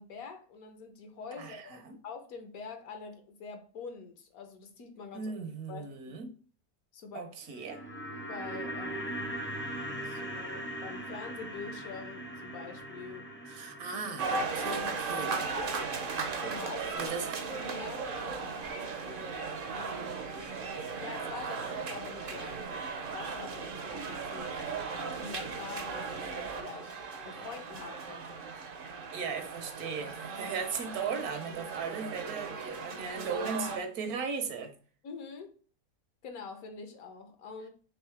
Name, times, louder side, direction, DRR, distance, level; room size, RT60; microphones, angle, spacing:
voice 1, 0.0-5.3 5.7-6.2 6.9-7.4 8.3-9.3 10.0-13.3 13.9-15.3 16.4-17.2 17.5-18.5 19.7-20.3 21.0-22.6 23.1-24.8 25.1-26.9 27.2-28.4 35.0-35.5 36.2-37.7, left 5 dB, 70° left, 1.3 m, -45 dB
voice 2, 1.4-2.0 5.1-6.3 7.1-7.8 13.4-15.3 17.0-17.4 29.1-34.7, right 5 dB, 75° right, 1.3 m, -37 dB
sound 1, 7.4-17.7 18.0-18.1, right 1 dB, 15° left, 0.4 m, -41 dB
sound 2, 14.2-33.8, right 4 dB, 55° right, 0.6 m, -37 dB
4.6 x 3.4 x 3.2 m
omnidirectional pair, 1.6 m